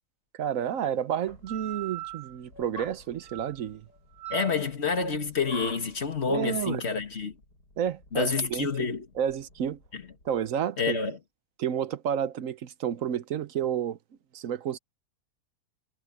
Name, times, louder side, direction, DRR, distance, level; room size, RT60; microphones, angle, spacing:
voice 1, 0.4-3.8 6.3-6.8 7.8-8.9 9.1-9.8 10.2-11.0 11.6-14.0 14.3-14.8, right 9 dB, 60° right, 1.1 m, -30 dB
sound 1, 1.3-10.5, right 5 dB, 80° left, 8.8 m, -43 dB
voice 2, 4.3-7.3 8.1-9.1 9.9-10.0 10.8-11.2, left 5 dB, 40° left, 2.1 m, -28 dB
omnidirectional pair, 1.7 m